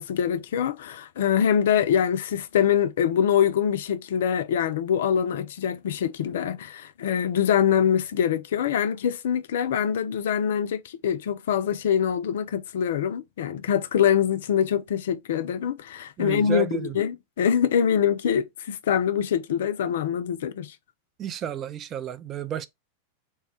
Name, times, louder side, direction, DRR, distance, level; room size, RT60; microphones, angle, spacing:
voice 1, 0.0-20.7, left 8 dB, 60° left, 0.3 m, -24 dB
voice 2, 16.2-17.0 21.2-22.7, right 9 dB, 30° right, 0.3 m, -31 dB
3.3 x 2.1 x 4.1 m
figure-of-eight pair, 90°, 0 cm